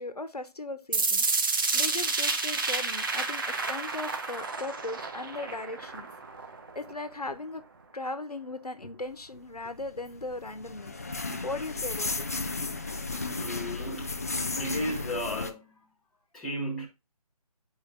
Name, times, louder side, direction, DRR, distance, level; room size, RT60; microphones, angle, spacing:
voice 1, 0.0-6.1 6.7-7.6 7.9-11.0 11.4-12.3, left 2 dB, 80° left, 1.1 m, -38 dB
sound 1, 0.9-6.9, right 4 dB, 35° right, 0.8 m, -30 dB
sound 2, 9.6-15.5, left 3 dB, 25° left, 0.4 m, -34 dB
voice 2, 13.4-14.1 14.6-15.8 16.3-16.9, equal, ahead, 1.0 m, -34 dB
9.4 x 4.9 x 2.5 m
figure-of-eight pair, 150°, 20 cm